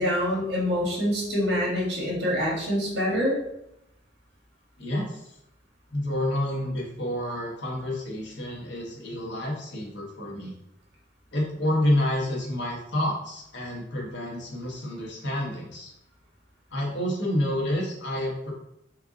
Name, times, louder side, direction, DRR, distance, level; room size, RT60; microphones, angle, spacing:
voice 1, 0.0-3.4, equal, 65° right, -3 dB, 1.5 m, -25 dB
voice 2, 4.8-5.3 5.9-10.5 11.3-15.9 16.7-18.5, left 1 dB, 65° left, -2 dB, 1.3 m, -29 dB
4.6 x 2.5 x 3.8 m, 0.80 s
head